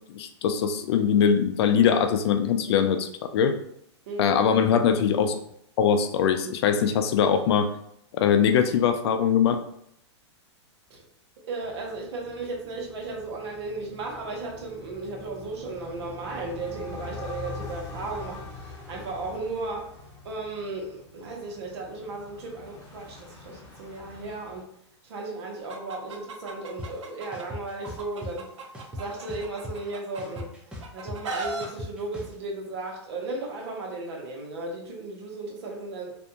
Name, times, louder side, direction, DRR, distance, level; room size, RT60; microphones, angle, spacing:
voice 1, 0.1-3.6 4.2-5.4 5.8-7.7 8.1-9.6, left 7 dB, 60° left, 8 dB, 0.4 m, -22 dB
voice 2, 4.1-4.4 8.3-8.4 10.9-11.0 11.5-19.9 20.2-24.7 25.0-28.5 28.9-30.5 30.9-36.1, right 3 dB, 65° right, 0 dB, 0.9 m, -35 dB
sound 1, 11.6-24.6, left 3 dB, 15° left, 0.9 m, -44 dB
Chicken rooster, 25.7-27.4 27.8-30.4 30.8-31.7, right 3 dB, 85° right, 0.6 m, -36 dB
sound 2, 26.8-26.9 27.3-28.3 28.7-29.9 30.2-32.3, left 1 dB, 5° right, 0.5 m, -38 dB
2.5 x 2.2 x 2.7 m, 0.72 s
hypercardioid pair, 130°, 15 cm